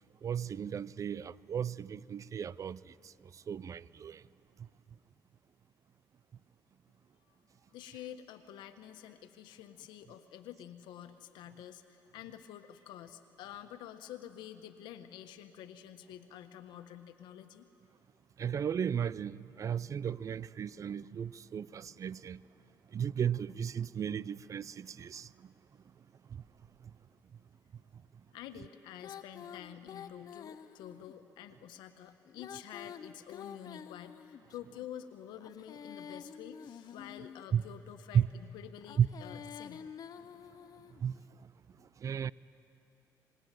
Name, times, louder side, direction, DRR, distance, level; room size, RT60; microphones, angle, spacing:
voice 1, 0.2-2.8 3.5-4.2 18.4-22.4 22.9-25.3 37.5-37.6 38.1-38.3 39.0-39.1 41.0-41.2 42.0-42.3, right 8 dB, 45° right, 0.6 m, -34 dB
voice 2, 7.7-17.7 28.3-39.9, left 10 dB, 80° left, 1.4 m, -49 dB
Female singing, 29.0-31.2 32.3-34.6 35.4-37.5 38.8-41.0, left 8 dB, 55° left, 0.9 m, -48 dB
26.5 x 21.0 x 9.3 m
cardioid pair, 80°, 8 cm